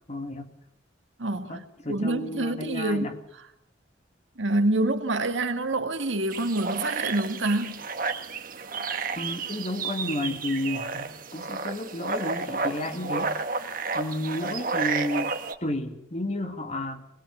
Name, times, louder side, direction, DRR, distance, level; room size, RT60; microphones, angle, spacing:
voice 1, 0.1-0.5 1.5-3.2 9.2-13.4 13.9-15.3 15.6-17.0, left 1 dB, 35° left, 2.2 m, -32 dB
voice 2, 1.2-1.6 1.9-3.1 4.4-7.8, right 2 dB, 80° right, 2.1 m, -26 dB
sound 1, 6.3-15.5, right 4 dB, 45° right, 1.4 m, -31 dB
21.0 x 20.5 x 7.3 m
head